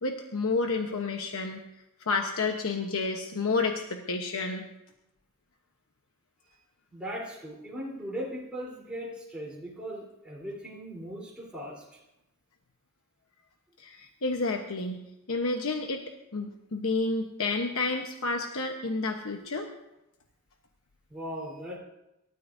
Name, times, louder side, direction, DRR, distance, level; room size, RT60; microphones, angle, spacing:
voice 1, 0.0-1.6 2.1-4.6 13.8-15.0 15.3-16.0 16.3-19.7, left 3 dB, 65° left, 3 dB, 1.1 m, -30 dB
voice 2, 6.9-11.8 14.0-14.1 21.1-21.8, equal, 5° right, -6 dB, 3.7 m, -38 dB
26.5 x 13.5 x 2.7 m, 0.91 s
head